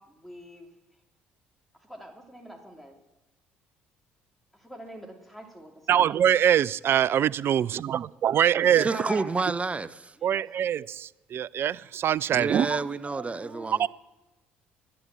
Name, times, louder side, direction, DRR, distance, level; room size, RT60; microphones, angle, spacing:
voice 1, 0.1-0.7 1.9-2.9 4.6-6.1 8.3-9.2 10.2-10.7 13.2-13.9, equal, ahead, 1 dB, 3.2 m, -43 dB
voice 2, 5.9-8.9 10.2-12.7 13.8-13.9, right 10 dB, 45° right, 22 dB, 0.4 m, -23 dB
voice 3, 8.7-10.1 12.3-13.9, right 4 dB, 25° right, 15 dB, 0.8 m, -30 dB
11.5 x 11.0 x 7.6 m, 1.0 s
figure-of-eight pair, 50°, 6 cm